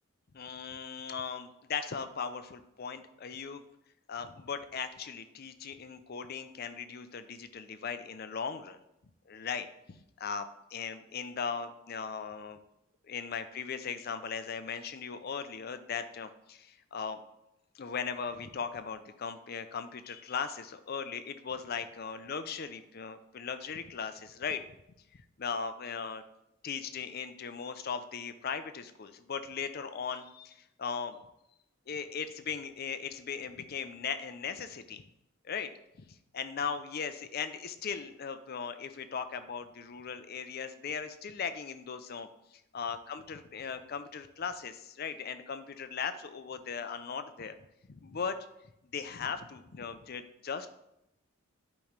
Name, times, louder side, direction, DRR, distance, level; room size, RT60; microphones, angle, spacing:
voice 1, 0.3-3.6 4.1-8.8 9.3-12.6 13.0-17.2 17.7-24.6 25.1-26.2 26.6-31.2 31.9-35.0 35.4-35.7 36.0-47.6 47.9-48.4 48.9-50.7, left 6 dB, 45° left, 10 dB, 0.5 m, -38 dB
8.5 x 3.1 x 5.0 m, 0.84 s
head